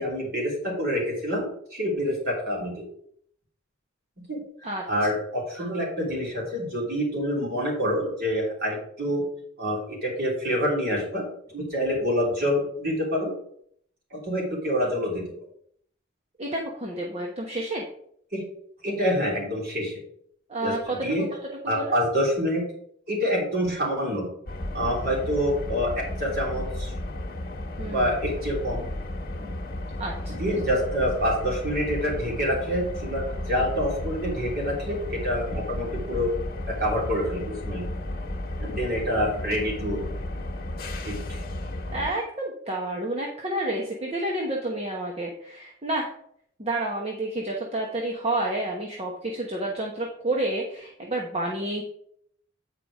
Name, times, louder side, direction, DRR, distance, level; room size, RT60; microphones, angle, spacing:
voice 1, 0.0-1.5 1.7-2.9 4.3-4.4 4.9-9.2 9.6-11.2 11.5-13.3 14.1-15.2 18.3-18.4 18.8-19.9 20.6-21.3 21.7-22.6 23.1-24.3 24.7-26.9 27.9-28.9 29.4-29.5 30.4-36.3 36.7-37.8 38.6-40.0 41.0-41.4, equal, 50° right, -3 dB, 3.3 m, -27 dB
voice 2, 16.4-17.8 20.5-21.2 21.8-22.0 27.8-28.1 30.0-30.4 41.9-46.1 46.6-51.8, right 1 dB, 30° right, -1 dB, 1.1 m, -29 dB
sound 1, 24.5-42.1, left 1 dB, 50° left, 1.3 m, -33 dB
8.8 x 4.9 x 4.9 m, 0.66 s
head